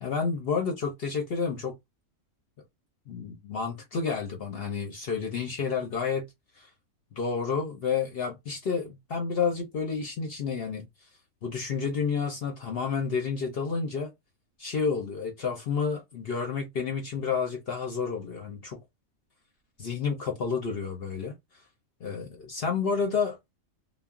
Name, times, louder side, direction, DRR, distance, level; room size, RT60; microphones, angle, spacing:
voice 1, 0.0-1.8 3.1-6.3 6.6-6.7 7.1-11.1 11.4-14.1 14.6-18.8 19.8-21.3 22.0-23.4, left 5 dB, 60° left, 0.7 m, -30 dB
2.3 x 2.0 x 3.5 m
omnidirectional pair, 1.4 m